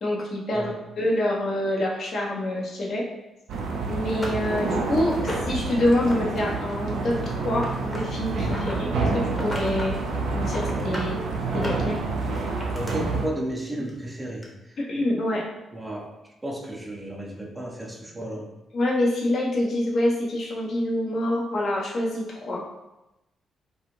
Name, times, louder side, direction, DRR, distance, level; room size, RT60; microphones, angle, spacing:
voice 1, 0.0-0.7 1.0-3.0 3.9-10.0 10.3-11.2 11.5-12.0 14.8-15.4 18.7-22.6, left 1 dB, 55° left, -2 dB, 0.6 m, -26 dB
sound 1, 3.5-3.6 4.1-5.6 6.0-6.4 6.7-8.8 9.3-9.9 10.2-11.1 11.5-12.9 13.9-14.0 14.4-14.5, equal, 25° left, 0.8 m, -35 dB
sound 2, 3.5-13.3, right 3 dB, 65° right, 0.4 m, -28 dB
voice 2, 12.7-14.8 15.7-16.2 16.4-18.5, right 1 dB, 15° right, 1 dB, 0.5 m, -33 dB
2.4 x 2.4 x 2.9 m, 0.93 s
hypercardioid pair, 40°, 0 cm